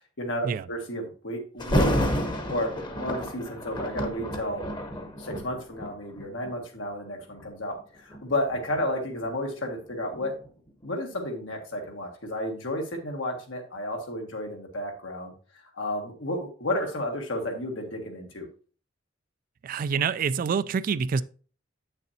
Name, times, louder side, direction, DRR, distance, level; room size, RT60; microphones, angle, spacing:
voice 1, 0.2-2.1 2.5-2.7 3.0-4.6 5.2-10.3 10.8-15.3 15.7-18.5, left 1 dB, 85° left, 1.7 m, -32 dB
Thunder, 1.6-6.6 7.2-7.5 8.1-10.9 11.2-11.3, equal, 25° left, 0.9 m, -30 dB
voice 2, 19.6-21.2, right 6 dB, 45° right, 0.3 m, -26 dB
8.4 x 6.6 x 2.7 m
head